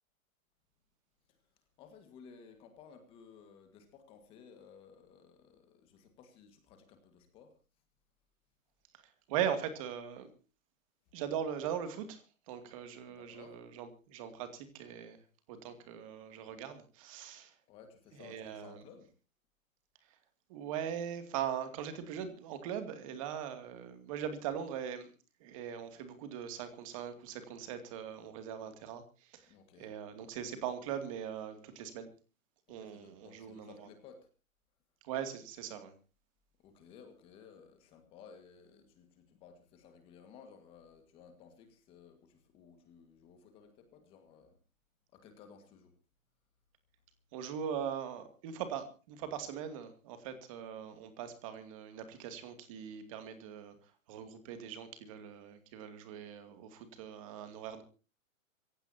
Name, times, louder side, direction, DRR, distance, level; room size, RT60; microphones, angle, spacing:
voice 1, 1.8-7.6 13.1-13.6 17.7-19.1 29.5-30.0 30.3-30.4 32.7-34.3 36.6-44.6 45.1-45.9, left 6 dB, 15° left, 7 dB, 1.7 m, -57 dB
voice 2, 8.9-10.3 11.1-15.2 15.5-17.6 18.1-18.8 20.0-20.2 20.5-25.1 25.4-32.1 32.7-33.9 35.0-35.9 47.3-57.8, right 9 dB, 25° right, 9 dB, 2.4 m, -40 dB
26.0 x 16.0 x 2.8 m, 0.35 s
hypercardioid pair, 175°, 42 cm